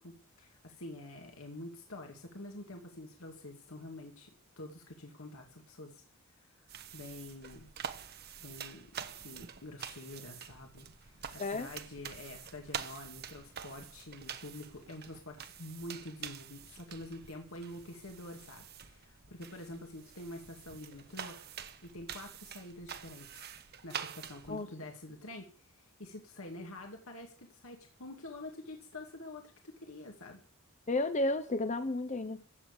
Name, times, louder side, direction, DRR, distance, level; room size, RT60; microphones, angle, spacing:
voice 1, 0.0-4.3 4.6-6.0 6.4-6.6 6.9-7.7 8.4-21.4 21.8-23.5 23.8-30.4, left 1 dB, 80° left, 2.4 m, -47 dB
sound 1, 6.7-24.6, right 7 dB, 45° right, 1.1 m, -46 dB
voice 2, 30.9-32.4, left 2 dB, 35° left, 0.8 m, -32 dB
15.5 x 7.2 x 8.4 m
head